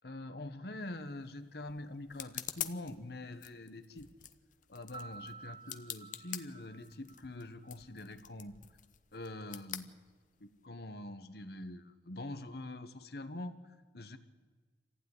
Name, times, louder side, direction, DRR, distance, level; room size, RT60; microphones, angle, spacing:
voice 1, 0.0-4.1 4.7-8.6 9.1-9.9 10.4-14.2, left 1 dB, 60° left, 10 dB, 1.5 m, -45 dB
sound 1, 0.8-10.7, left 11 dB, 45° left, 1.0 m, -47 dB
Piano, 4.9-7.7, right 4 dB, 30° right, 1.0 m, -51 dB
26.5 x 15.5 x 9.8 m, 1.4 s
head